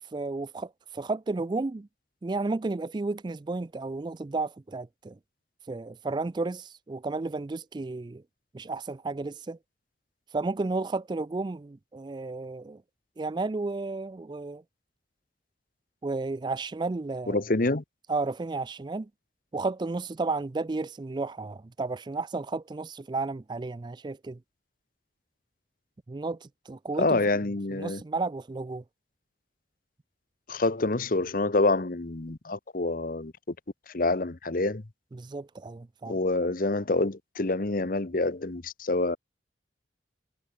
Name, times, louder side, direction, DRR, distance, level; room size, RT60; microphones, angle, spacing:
voice 1, 0.1-1.9 2.2-5.2 5.7-8.2 8.5-9.6 10.3-12.8 13.2-14.6 16.0-17.4 18.1-19.1 19.5-24.4 26.1-27.2 27.7-28.8 35.1-36.2, right 3 dB, 25° right, 0.4 m, -32 dB
voice 2, 17.3-17.8 27.0-28.0 30.5-33.5 33.9-34.8 36.1-39.2, left 2 dB, 50° left, 1.0 m, -27 dB
head